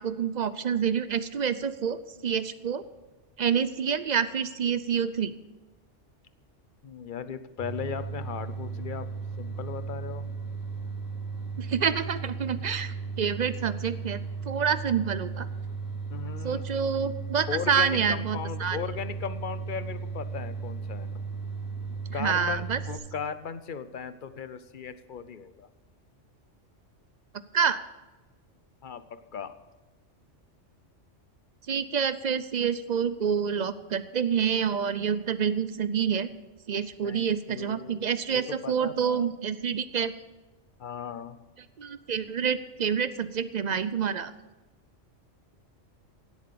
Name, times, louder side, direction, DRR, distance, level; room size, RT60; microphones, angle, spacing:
voice 1, 0.0-2.8 3.4-5.3 11.6-14.2 14.5-15.5 16.4-18.8 22.1-22.8 27.5-27.8 31.7-36.3 36.7-40.1 41.8-44.3, right 7 dB, 55° right, 14 dB, 0.5 m, -27 dB
voice 2, 6.8-9.1 9.4-10.2 16.1-16.6 17.5-21.1 22.1-25.7 28.8-29.5 37.0-39.3 40.8-41.4, left 7 dB, 50° left, 12 dB, 0.7 m, -37 dB
sound 1, 7.6-23.0, right 4 dB, 15° left, 3.7 m, -36 dB
17.0 x 8.2 x 6.8 m, 1.1 s
omnidirectional pair, 1.3 m